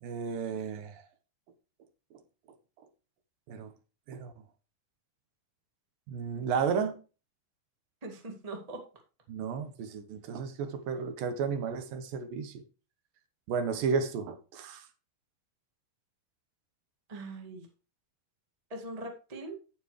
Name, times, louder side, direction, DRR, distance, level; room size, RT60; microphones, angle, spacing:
voice 1, 0.0-1.0 3.5-3.7 4.1-4.3 6.1-7.0 9.3-12.6 13.5-14.9, right 6 dB, 75° right, 2.6 m, -33 dB
voice 2, 8.0-8.8 17.1-17.6 18.7-19.6, right 2 dB, 25° right, 0.7 m, -41 dB
9.4 x 9.3 x 3.2 m
omnidirectional pair, 4.4 m